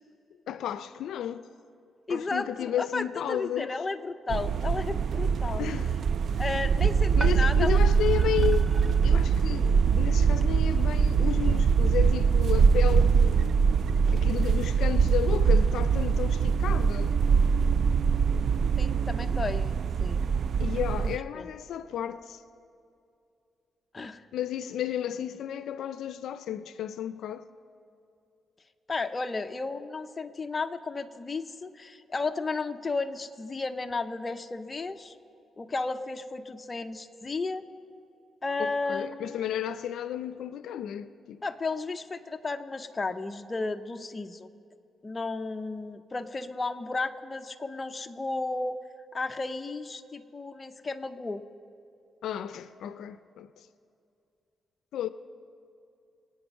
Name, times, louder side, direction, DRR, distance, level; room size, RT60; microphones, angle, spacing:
voice 1, 0.5-1.5 2.1-3.7 5.6-5.9 7.2-8.7 9.0-13.5 14.1-17.1 20.6-22.4 24.3-27.5 38.6-41.4 52.2-53.7 54.9-55.1, left 10 dB, 85° left, 0.4 m, -33 dB
voice 2, 2.1-5.7 6.4-7.8 18.8-20.2 21.0-21.5 23.9-24.2 28.9-35.2 35.6-37.6 38.4-39.4 41.4-44.5 45.0-48.8 49.1-51.4, left 3 dB, 25° left, 0.7 m, -33 dB
sound 1, 4.3-21.2, right 6 dB, 65° right, 0.3 m, -23 dB
sound 2, 7.1-10.5, right 2 dB, 20° right, 0.6 m, -45 dB
24.0 x 9.0 x 5.4 m
cardioid pair, 105°, 0 cm